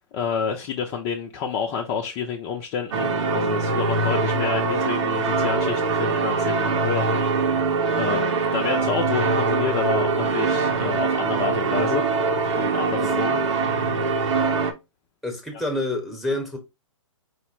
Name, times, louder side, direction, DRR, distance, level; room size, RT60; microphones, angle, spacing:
voice 1, 0.1-7.2 7.9-12.1 12.5-13.4, left 6 dB, 25° left, 0.5 m, -29 dB
sound 1, 2.9-14.7, right 4 dB, 65° right, 1.0 m, -23 dB
voice 2, 15.2-16.6, left 1 dB, ahead, 1.0 m, -28 dB
4.9 x 2.1 x 4.5 m
hypercardioid pair, 145°, 17 cm